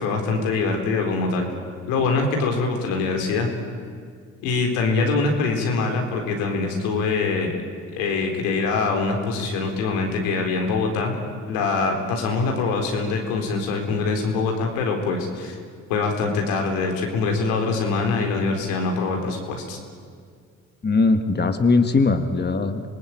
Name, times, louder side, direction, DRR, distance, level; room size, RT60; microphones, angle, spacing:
voice 1, 0.0-1.5 1.9-3.5 4.4-7.5 7.9-11.1 11.5-15.6 15.9-19.8, left 4 dB, 85° left, 2 dB, 4.0 m, -24 dB
voice 2, 20.8-22.8, left 3 dB, 30° left, 8 dB, 1.8 m, -20 dB
26.0 x 19.0 x 8.9 m, 2.1 s
supercardioid pair, 60°, 34 cm